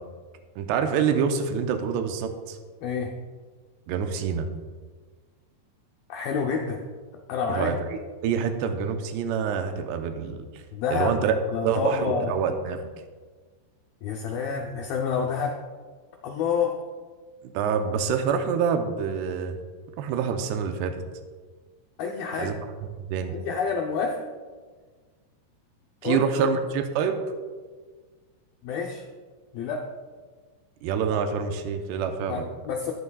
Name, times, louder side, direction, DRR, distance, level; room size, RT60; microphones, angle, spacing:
voice 1, 0.6-2.6 3.9-4.5 7.5-10.5 10.9-11.3 11.6-12.9 17.4-19.6 20.0-21.0 22.4-22.6 23.0-23.4 26.0-27.2 30.8-32.4, right 6 dB, 80° right, 6 dB, 2.6 m, -26 dB
voice 2, 2.8-3.1 6.1-6.8 7.3-7.7 10.7-12.3 14.0-15.6 16.2-16.7 22.0-22.5 23.3-24.2 26.0-26.5 28.6-29.0 29.5-29.8 32.3-32.9, left 5 dB, 85° left, 1 dB, 2.1 m, -28 dB
14.0 x 9.7 x 2.3 m, 1.5 s
omnidirectional pair, 5.1 m